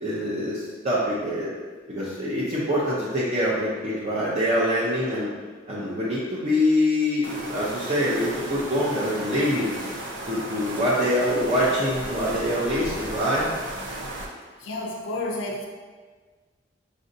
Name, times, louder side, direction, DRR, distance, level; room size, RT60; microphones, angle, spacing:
voice 1, 0.0-1.5 1.9-5.3 5.7-9.7 10.3-13.5, equal, 35° right, -8 dB, 0.6 m, -24 dB
sound 1, 7.2-14.3, right 1 dB, 80° right, 0.6 m, -35 dB
voice 2, 14.6-15.7, left 2 dB, 90° left, -1 dB, 0.5 m, -32 dB
5.1 x 2.6 x 2.6 m, 1.4 s
head